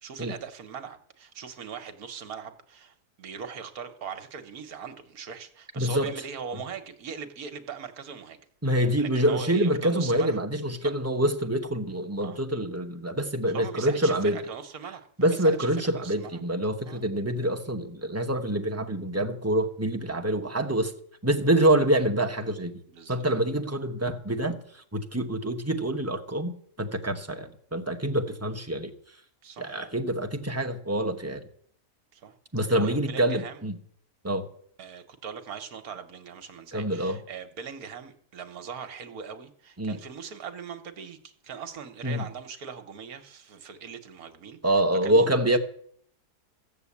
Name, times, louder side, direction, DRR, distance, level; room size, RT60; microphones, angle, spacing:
voice 1, 0.0-8.4 9.0-10.4 12.2-12.4 13.5-15.7 16.0-16.4 16.9-17.1 22.9-23.3 29.4-29.9 32.1-33.6 34.8-45.6, right 6 dB, 65° right, 9 dB, 1.5 m, -40 dB
voice 2, 5.8-6.1 8.6-14.4 15.2-20.9 21.2-22.7 23.1-24.6 24.9-28.9 29.6-31.4 32.5-33.8 34.2-34.5 36.7-37.2 39.8-40.0 42.0-42.2 44.6-45.6, right 1 dB, 10° right, 4 dB, 0.8 m, -26 dB
15.0 x 7.2 x 8.4 m, 0.63 s
omnidirectional pair, 1.7 m